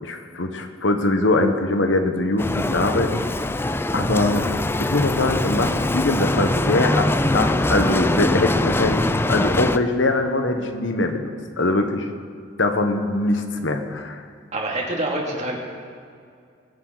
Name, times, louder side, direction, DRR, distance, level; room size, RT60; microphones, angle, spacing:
voice 1, 0.0-3.2 3.9-4.5 4.8-12.1 12.6-14.2, left 2 dB, 75° left, 5 dB, 1.3 m, -22 dB
Bicycle, 2.4-9.8, left 1 dB, 10° left, 0.4 m, -22 dB
voice 2, 14.5-15.6, right 1 dB, 40° right, -2 dB, 2.7 m, -26 dB
23.5 x 11.0 x 4.1 m, 2.3 s
head